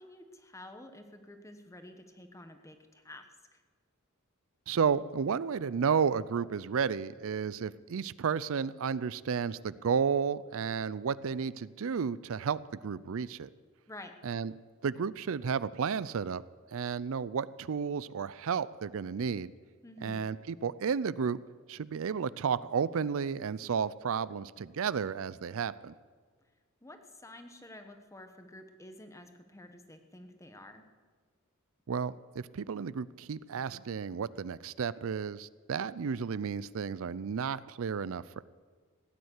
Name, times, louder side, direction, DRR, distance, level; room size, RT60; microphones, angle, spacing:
voice 1, 0.0-3.6 13.9-14.1 19.8-20.2 26.8-30.8, left 1 dB, 15° left, 7 dB, 1.1 m, -50 dB
voice 2, 4.7-13.5 14.2-14.5 14.8-16.4 16.7-19.5 20.0-21.4 21.7-25.9 31.9-38.4, right 6 dB, 65° right, 18 dB, 0.4 m, -32 dB
16.5 x 9.5 x 8.1 m, 1.6 s
head